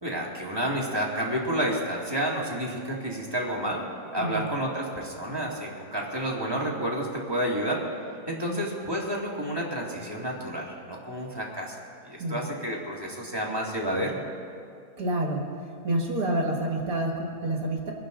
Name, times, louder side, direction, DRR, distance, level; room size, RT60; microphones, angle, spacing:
voice 1, 0.0-3.8 4.1-7.8 8.3-11.8 12.0-14.2, right 1 dB, 15° right, -3 dB, 2.0 m, -30 dB
voice 2, 15.0-15.5 15.8-17.9, right 1 dB, 65° right, 1 dB, 2.1 m, -28 dB
24.0 x 11.0 x 3.9 m, 2.3 s
omnidirectional pair, 1.7 m